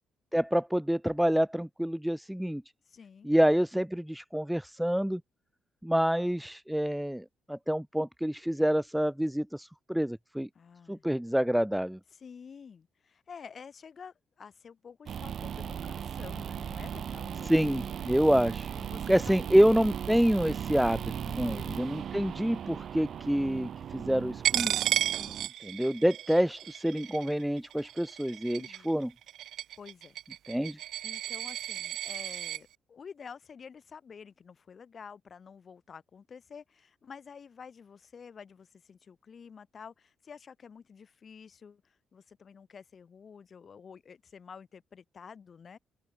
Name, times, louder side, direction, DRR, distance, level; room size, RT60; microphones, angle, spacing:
voice 1, 0.3-2.6 3.2-5.2 5.8-10.5 10.9-12.0 17.5-18.7 19.1-24.8 25.7-29.1 30.5-30.8, equal, 5° right, 0.4 m, -27 dB
voice 2, 2.9-3.3 10.5-11.1 12.1-17.6 18.7-19.5 21.3-21.9 25.0-25.4 28.5-28.9 29.8-30.2 30.5-30.6 31.0-45.8, left 6 dB, 45° left, 5.6 m, -49 dB
sound 1, 15.1-25.5, right 8 dB, 60° right, 0.5 m, -37 dB
Coin (dropping), 24.4-32.6, right 12 dB, 80° right, 1.0 m, -33 dB
cardioid pair, 90°, 0 cm